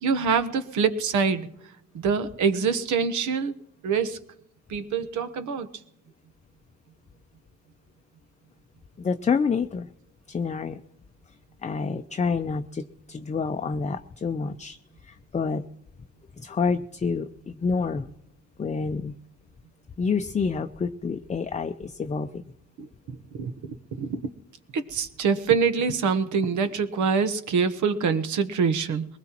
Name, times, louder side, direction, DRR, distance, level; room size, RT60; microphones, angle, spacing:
voice 1, 0.0-1.5 1.9-3.5 3.8-4.2 4.7-5.7 22.8-23.5 24.0-24.2 24.7-29.1, right 5 dB, 75° right, 10 dB, 1.1 m, -25 dB
voice 2, 9.0-9.9 10.3-10.8 11.6-14.8 15.0-15.6 16.4-18.1 18.6-19.2 20.0-22.4, left 5 dB, 25° left, 8 dB, 0.6 m, -28 dB
21.5 x 19.5 x 3.0 m, 0.80 s
cardioid pair, 90°, 30 cm